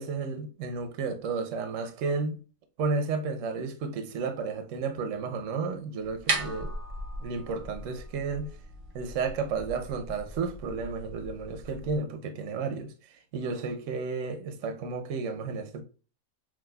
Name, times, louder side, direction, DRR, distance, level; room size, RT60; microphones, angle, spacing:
voice 1, 0.0-2.4 2.8-6.7 7.2-8.5 8.9-15.8, right 4 dB, 65° right, 0.9 m, -32 dB
sound 1, 6.0-12.0, right 2 dB, 45° right, 0.4 m, -37 dB
6.0 x 2.6 x 2.2 m
omnidirectional pair, 1.5 m